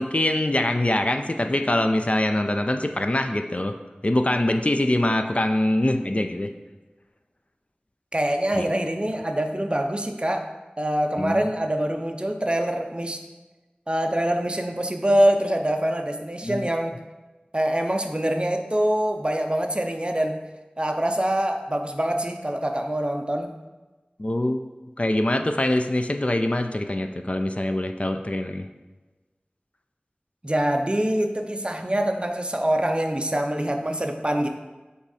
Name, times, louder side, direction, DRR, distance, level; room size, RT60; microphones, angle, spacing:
voice 1, 0.0-3.8 4.0-6.5 8.5-8.7 11.2-11.5 16.4-16.6 24.2-24.6 25.0-28.7, left 1 dB, 40° left, 6 dB, 0.4 m, -24 dB
voice 2, 8.1-10.5 10.8-13.2 13.9-17.0 17.5-20.4 20.8-23.6 30.4-34.5, right 1 dB, 30° right, 5 dB, 0.6 m, -24 dB
8.2 x 3.6 x 4.2 m, 1.2 s
wide cardioid pair, 45°, 3 cm